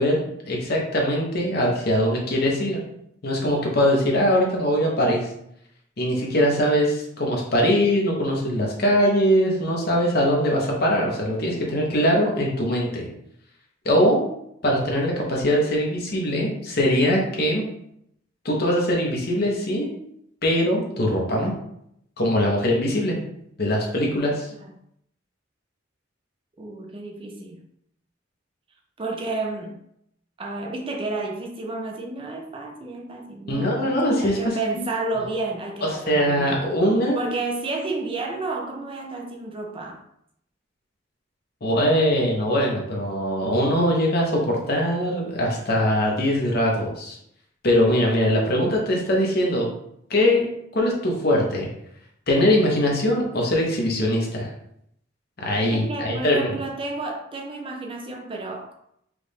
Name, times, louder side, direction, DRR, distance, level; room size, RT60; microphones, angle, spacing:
voice 1, 0.0-2.8 3.2-5.3 6.0-13.0 13.8-14.2 14.6-17.6 18.4-19.9 20.4-21.5 22.2-23.2 23.6-24.5 33.5-34.8 35.8-37.2 41.6-47.2 47.6-49.7 50.1-51.7 52.3-54.5 55.4-56.6, equal, 50° left, -2 dB, 1.1 m, -22 dB
voice 2, 26.6-27.6 29.0-29.8 30.4-33.9 34.2-36.6 37.1-40.0 55.7-58.7, right 3 dB, 25° right, 2 dB, 0.5 m, -31 dB
4.8 x 2.5 x 3.5 m, 0.74 s
head